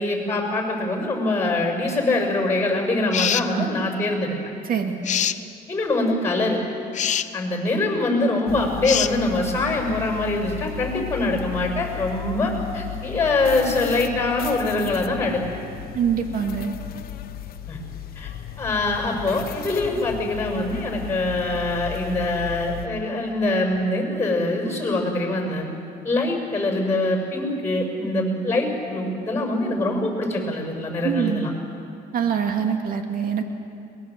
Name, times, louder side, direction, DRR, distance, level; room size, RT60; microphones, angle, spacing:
voice 1, 0.0-4.4 5.7-6.6 7.3-15.4 17.7-17.8 18.2-18.3 18.6-25.6 26.0-31.5, left 2 dB, 15° left, 2 dB, 6.5 m, -24 dB
sound 1, 3.1-3.5 5.0-5.4 6.9-7.3 8.8-9.1, left 9 dB, 45° left, 0.8 m, -23 dB
voice 2, 4.7-5.0 15.9-16.7 31.0-31.5 32.1-33.4, right 7 dB, 55° right, 4 dB, 2.4 m, -24 dB
sound 2, 8.5-22.9, left 11 dB, 60° left, 1.2 m, -35 dB
23.0 x 21.0 x 7.8 m, 2.5 s
cardioid pair, 110°, 17 cm